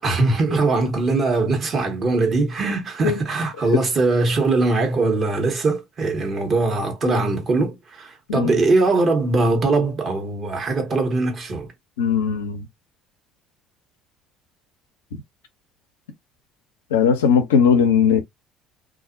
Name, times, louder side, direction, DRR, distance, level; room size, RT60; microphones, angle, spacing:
voice 1, 0.0-11.7, right 3 dB, 45° right, 1.1 m, -21 dB
voice 2, 12.0-12.7 16.9-18.2, left 7 dB, 85° left, 0.5 m, -18 dB
2.5 x 2.0 x 2.5 m
hypercardioid pair, 65°, 0 cm